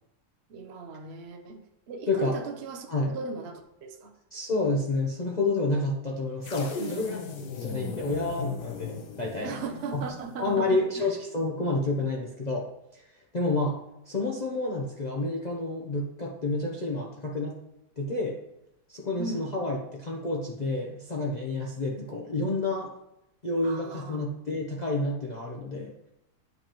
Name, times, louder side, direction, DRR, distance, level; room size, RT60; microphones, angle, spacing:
voice 1, 0.5-1.6 1.9-4.1 6.8-7.6 9.4-11.1 19.2-19.5 23.6-24.3, right 3 dB, 55° right, 4 dB, 0.7 m, -37 dB
voice 2, 4.3-7.2 7.6-9.5 9.9-10.0 10.4-12.7 12.9-13.0 13.3-13.8 14.1-17.5 18.0-18.4 18.9-22.9 23.4-25.9, left 2 dB, 40° left, -2 dB, 0.6 m, -29 dB
sound 1, 6.4-10.7, left 5 dB, 75° left, 1.4 m, -38 dB
9.2 x 5.2 x 3.0 m, 0.85 s
omnidirectional pair, 1.8 m